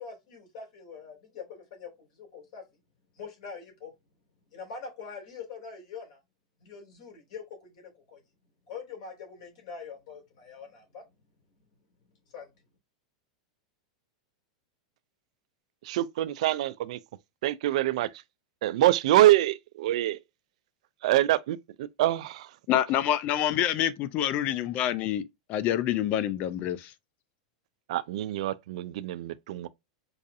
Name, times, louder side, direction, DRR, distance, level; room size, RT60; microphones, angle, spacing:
voice 1, 0.0-2.6 3.1-3.9 4.5-6.2 6.6-8.2 8.7-11.0 12.3-12.5, left 5 dB, 65° left, 2.6 m, -43 dB
voice 2, 15.8-17.0 17.4-18.1 18.6-20.2 21.0-22.5 27.9-29.7, right 14 dB, 70° right, 0.3 m, -25 dB
voice 3, 22.7-26.9, left 11 dB, 45° left, 0.4 m, -27 dB
4.7 x 2.6 x 2.5 m
hypercardioid pair, 120°, 4 cm